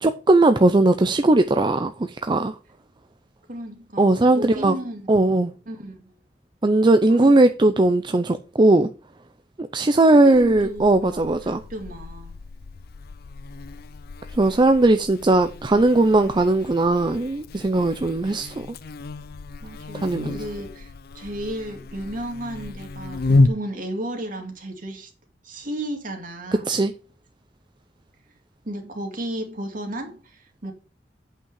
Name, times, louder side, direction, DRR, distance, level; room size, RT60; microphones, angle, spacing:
voice 1, 0.0-1.9 2.2-2.5 4.0-4.7 5.1-5.5 6.6-8.9 9.6-11.6 14.4-18.7 20.0-20.4 26.7-26.9, right 2 dB, 25° right, 0.5 m, -18 dB
voice 2, 3.5-5.1 5.7-6.1 7.1-7.3 9.9-12.4 19.6-25.1 25.4-26.7 28.6-30.7, right 1 dB, 50° right, 2.4 m, -34 dB
Buzz, 10.3-23.5, left 2 dB, 60° left, 0.5 m, -30 dB
8.3 x 5.7 x 5.4 m
head